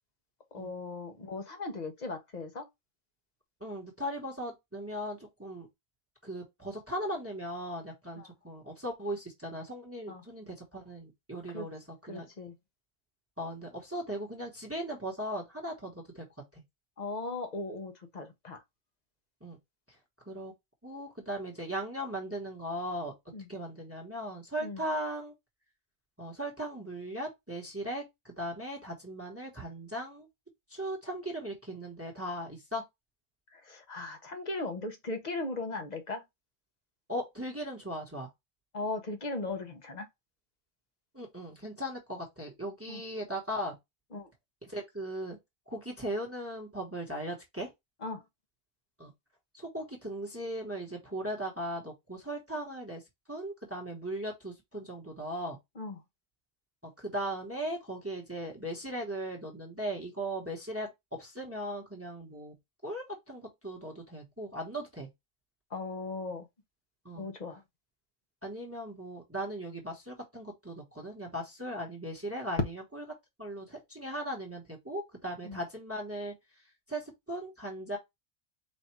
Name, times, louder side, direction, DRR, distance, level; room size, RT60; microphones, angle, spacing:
voice 1, 0.5-2.7 8.2-8.3 10.1-10.2 11.5-11.7 12.1-12.5 17.0-18.6 23.3-23.5 24.6-24.8 33.5-36.2 38.7-40.1 42.9-43.0 44.1-44.3 48.0-48.2 55.8-56.0 65.7-66.5 67.1-67.6 75.4-75.6, left 3 dB, 40° left, 0.9 m, -38 dB
voice 2, 3.6-5.7 6.2-12.3 13.4-16.2 16.5-16.6 19.4-19.6 20.3-20.5 20.8-23.1 23.5-25.3 26.2-30.3 30.7-32.8 37.1-38.3 41.1-43.7 44.6-45.4 45.7-47.7 49.0-49.1 49.5-53.0 53.3-55.6 57.0-62.5 62.8-65.1 67.0-67.3 68.4-73.0 73.4-76.3 76.9-78.0, right 1 dB, 10° right, 1.2 m, -38 dB
4.2 x 2.5 x 4.5 m
omnidirectional pair, 1.2 m